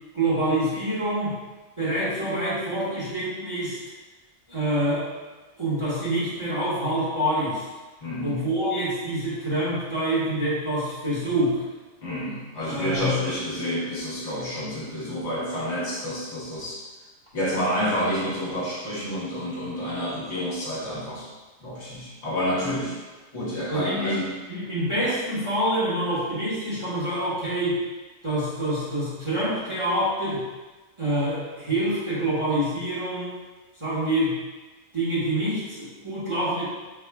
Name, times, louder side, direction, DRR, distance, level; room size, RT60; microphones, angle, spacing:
voice 1, 0.1-1.4 1.8-3.8 4.5-5.1 5.6-7.7 8.2-11.6 12.7-13.2 23.7-24.2 24.5-27.8 28.2-30.4 31.0-33.3 33.8-34.4 34.9-36.7, right 1 dB, 25° right, -11 dB, 1.3 m, -26 dB
voice 2, 8.0-8.4 12.0-16.8 17.3-21.3 21.6-23.0 23.3-24.3, equal, 55° left, -7 dB, 1.4 m, -29 dB
5.3 x 3.5 x 2.2 m, 1.3 s
omnidirectional pair, 1.4 m